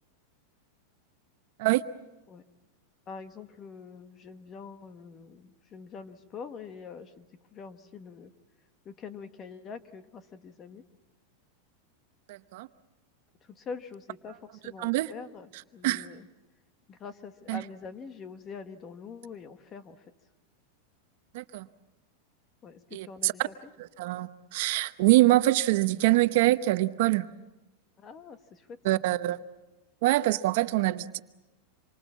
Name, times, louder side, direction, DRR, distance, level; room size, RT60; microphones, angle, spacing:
voice 1, 3.1-7.3 7.5-8.3 8.8-10.8 13.4-16.3 16.9-20.1 22.6-23.7 28.0-28.8, left 5 dB, 25° left, 10 dB, 1.3 m, -44 dB
voice 2, 12.3-12.7 14.8-15.1 15.8-16.1 17.5-17.6 21.3-21.7 22.9-23.5 24.0-27.3 28.8-29.4 30.0-31.2, right 17 dB, 60° right, 12 dB, 0.9 m, -24 dB
27.0 x 24.0 x 7.3 m, 1.1 s
supercardioid pair, 155°, 0 cm